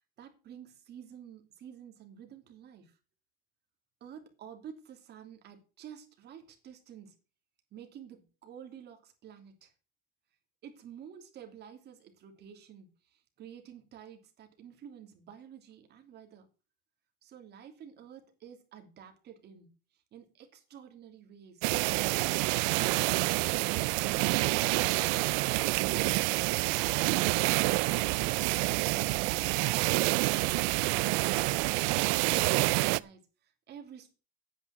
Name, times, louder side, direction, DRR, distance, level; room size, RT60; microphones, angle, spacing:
voice 1, 0.2-3.0 4.0-7.1 7.7-9.7 10.6-16.5 17.2-21.7 32.0-34.1, right 8 dB, 35° right, 3.0 m, -50 dB
sound 1, 21.6-33.0, right 23 dB, 65° right, 0.6 m, -28 dB
9.6 x 9.1 x 5.8 m
cardioid pair, 165°, 29 cm